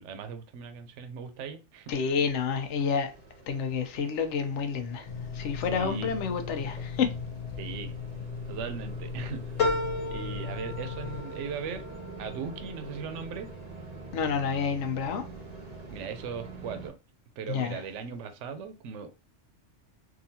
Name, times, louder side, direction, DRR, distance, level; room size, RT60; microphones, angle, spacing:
voice 1, 0.0-1.9 5.6-6.1 7.6-7.9 8.5-9.4 10.1-11.9 12.2-13.5 15.9-16.9 17.4-19.1, right 6 dB, 70° right, 0.9 m, -38 dB
voice 2, 1.9-3.1 3.5-5.1 5.3-7.1 14.1-15.2 17.5-17.7, left 6 dB, 70° left, 1.0 m, -29 dB
sound 1, 3.0-16.9, right 3 dB, 40° right, 0.7 m, -46 dB
sound 2, 5.0-11.2, left 6 dB, 55° left, 0.5 m, -38 dB
sound 3, 9.6-14.4 14.8-15.5 15.9-16.0, left 3 dB, 85° left, 1.2 m, -35 dB
3.7 x 2.5 x 2.7 m
omnidirectional pair, 1.3 m